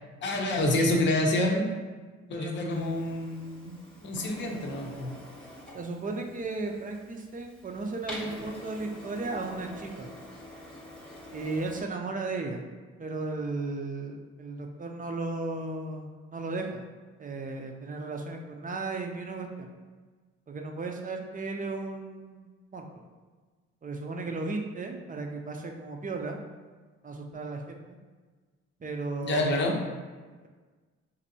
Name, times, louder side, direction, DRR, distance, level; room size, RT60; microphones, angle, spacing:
voice 1, 0.2-1.6 2.3-3.7 4.0-5.1 29.2-29.8, left 1 dB, 40° left, 1 dB, 0.7 m, -27 dB
Printer, 2.7-11.8, left 1 dB, 5° left, 0.9 m, -46 dB
voice 2, 5.7-10.1 11.3-12.6 13.0-16.8 17.2-19.7 20.5-22.8 23.8-26.4 27.0-27.8 28.8-29.8, right 3 dB, 30° right, 2 dB, 0.5 m, -35 dB
4.2 x 2.6 x 2.7 m, 1.4 s
cardioid pair, 90°, 30 cm